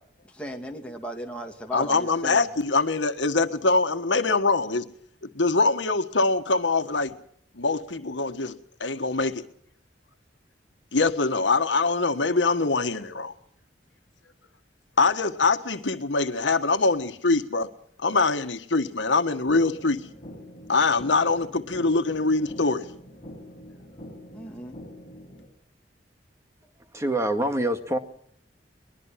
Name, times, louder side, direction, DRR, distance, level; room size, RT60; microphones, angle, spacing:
voice 1, 0.3-2.5 24.3-24.8, equal, 5° left, 2.5 m, -36 dB
voice 2, 1.7-4.9 5.3-7.1 7.6-8.5 8.8-9.4 10.9-13.3 15.0-17.7 18.0-20.0 20.7-22.9, left 3 dB, 85° left, 1.5 m, -23 dB
sound 1, 19.5-25.5, equal, 30° left, 6.6 m, -44 dB
voice 3, 26.9-28.0, right 1 dB, 15° right, 1.8 m, -25 dB
23.0 x 20.5 x 5.9 m
head